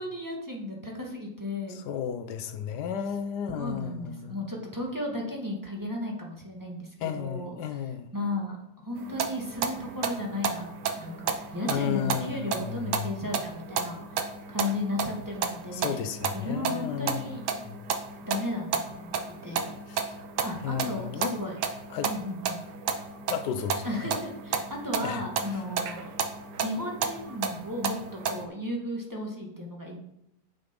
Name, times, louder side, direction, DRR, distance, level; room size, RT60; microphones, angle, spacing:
voice 1, 0.0-1.8 3.5-7.8 8.1-10.7 11.0-16.0 16.3-17.4 18.3-19.2 19.4-19.7 20.4-21.6 22.0-22.6 23.8-26.1 26.6-30.0, left 1 dB, 10° right, 1.7 m, -35 dB
voice 2, 1.7-4.4 7.0-8.1 11.7-13.1 15.7-17.8 19.9-20.1 20.6-21.3 21.9-22.1 23.3-24.1 25.0-25.2, left 8 dB, 85° left, 1.3 m, -33 dB
sound 1, 9.0-28.4, right 6 dB, 90° right, 1.5 m, -33 dB
7.7 x 7.1 x 5.2 m
omnidirectional pair, 1.7 m